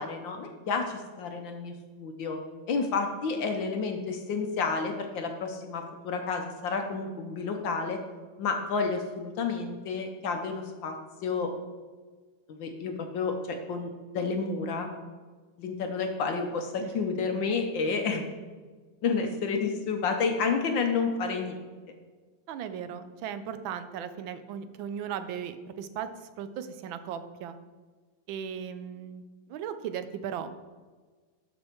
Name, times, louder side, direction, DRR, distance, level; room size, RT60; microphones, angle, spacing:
voice 1, 0.0-2.4 2.7-8.0 8.4-11.0 11.2-11.5 12.5-14.9 15.6-18.2 19.0-21.8, left 4 dB, 70° left, 5 dB, 1.5 m, -30 dB
voice 2, 22.5-26.1 26.4-27.6 28.3-29.2 29.5-30.5, right 8 dB, 75° right, 11 dB, 1.4 m, -37 dB
12.0 x 5.4 x 4.5 m, 1.4 s
omnidirectional pair, 2.2 m